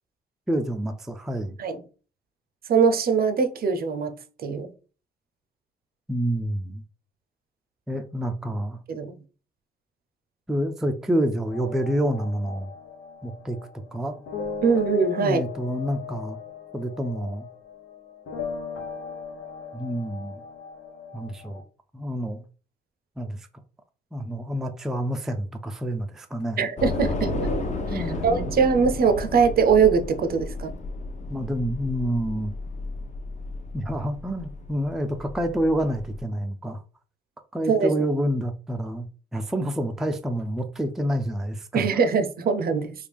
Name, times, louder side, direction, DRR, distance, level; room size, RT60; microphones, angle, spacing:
voice 1, 0.5-1.6 6.1-6.8 7.9-8.8 10.5-12.7 13.2-13.6 13.9-14.2 15.2-16.4 16.7-17.5 19.7-20.4 21.1-21.6 21.9-22.4 23.2-23.4 24.1-26.6 27.9-28.5 31.3-32.5 33.7-36.8 37.5-39.1 39.3-41.9, equal, ahead, 0.4 m, -28 dB
voice 2, 2.7-4.2 4.4-4.7 8.9-9.1 14.6-15.4 26.6-27.3 27.9-30.7 37.7-37.9 41.7-42.9, right 5 dB, 50° right, 0.5 m, -22 dB
sound 1, 11.5-21.6, left 6 dB, 80° left, 0.8 m, -38 dB
Train / Subway metro underground, 26.8-36.2, left 2 dB, 35° left, 0.7 m, -33 dB
3.4 x 2.4 x 3.4 m
cardioid pair, 90°, 20 cm